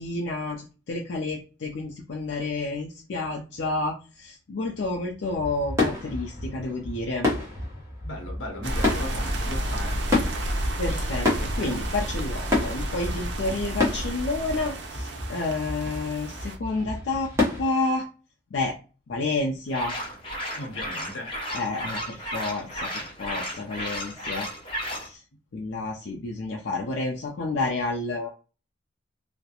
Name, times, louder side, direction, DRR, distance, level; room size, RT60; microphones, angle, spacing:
voice 1, 0.0-7.3 10.4-17.3 17.6-18.1 18.5-18.7 19.1-19.9 21.5-24.5 25.0-25.2 25.5-28.3, left 3 dB, 65° left, 0.4 m, -30 dB
sound 1, 5.2-17.6, left 2 dB, 15° right, 0.8 m, -30 dB
voice 2, 8.0-10.1 20.6-21.4, left 1 dB, 85° left, 0.7 m, -37 dB
sound 2, 8.6-16.6, right 1 dB, 65° right, 0.5 m, -31 dB
sound 3, 19.7-25.1, equal, 25° left, 0.7 m, -34 dB
2.3 x 2.0 x 2.8 m
head